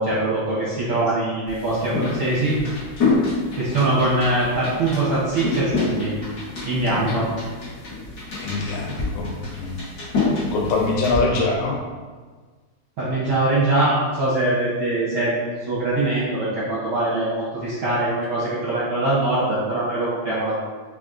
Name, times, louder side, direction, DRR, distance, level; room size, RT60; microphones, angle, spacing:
voice 1, 0.0-2.5 3.5-6.1 6.6-7.3 13.0-20.6, right 2 dB, 70° right, -10 dB, 1.2 m, -22 dB
sound 1, 1.5-11.2, left 3 dB, 60° left, 1.0 m, -27 dB
voice 2, 8.4-9.8 10.5-11.8, left 3 dB, 85° left, -2 dB, 2.1 m, -24 dB
5.1 x 2.5 x 2.5 m, 1.4 s
omnidirectional pair, 3.4 m